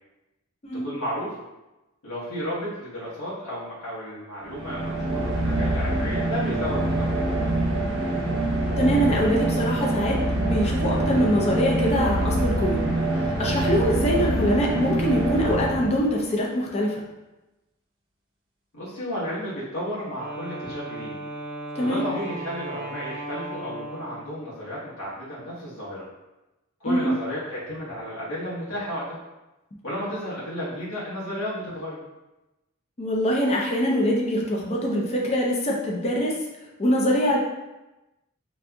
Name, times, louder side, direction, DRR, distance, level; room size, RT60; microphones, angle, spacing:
voice 1, 0.8-1.3 2.0-7.6 18.7-21.2 21.8-26.0 26.8-29.2 29.8-32.0, equal, 80° left, -9 dB, 1.2 m, -33 dB
sound 1, 4.5-16.3, right 1 dB, 65° right, 0.8 m, -25 dB
voice 2, 8.8-12.8 13.4-16.9 21.8-22.1 26.9-27.1 33.0-36.3 36.8-37.4, equal, 30° left, -3 dB, 0.5 m, -23 dB
Wind instrument woodwind instrument, 20.1-24.5, right 1 dB, 35° right, 0.6 m, -36 dB
4.2 x 2.5 x 2.3 m, 1.0 s
head